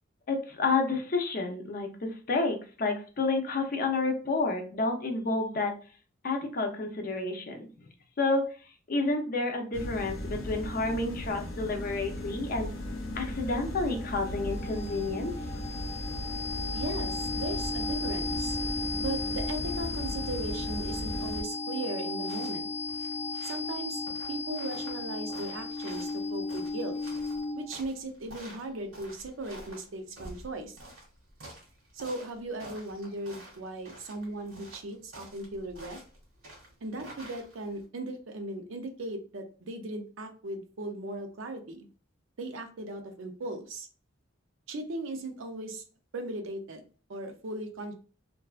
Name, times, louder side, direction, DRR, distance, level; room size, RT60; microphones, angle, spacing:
voice 1, 0.3-5.8 6.2-7.7 8.2-8.6 8.9-12.7 13.1-15.6, left 3 dB, 45° left, 4 dB, 0.5 m, -30 dB
sound 1, 9.7-21.4, left 1 dB, 90° left, 0.7 m, -37 dB
sound 2, 13.9-27.8, left 3 dB, 15° right, 0.6 m, -35 dB
voice 2, 16.7-18.6 19.0-22.7 23.4-24.0 24.3-27.0 27.5-30.8 31.9-36.0 36.8-41.9 42.4-43.9 44.7-45.8 46.1-46.8 47.1-47.9, right 2 dB, 75° right, 5 dB, 0.5 m, -37 dB
sound 3, 22.1-37.8, right 1 dB, 90° right, 1.3 m, -49 dB
2.6 x 2.2 x 2.3 m, 0.38 s
head